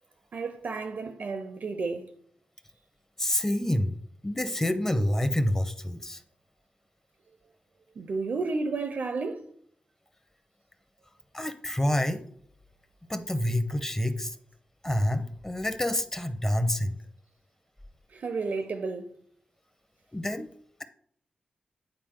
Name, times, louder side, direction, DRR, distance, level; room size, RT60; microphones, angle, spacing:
voice 1, 0.3-2.1 8.0-9.5 18.1-19.1, right 4 dB, 70° right, 0.6 m, -32 dB
voice 2, 3.2-3.9 4.2-6.2 11.3-12.2 13.1-14.3 14.8-16.9 20.1-20.5, left 1 dB, 15° left, 0.8 m, -27 dB
8.8 x 4.7 x 3.8 m
cardioid pair, 75°, 3 cm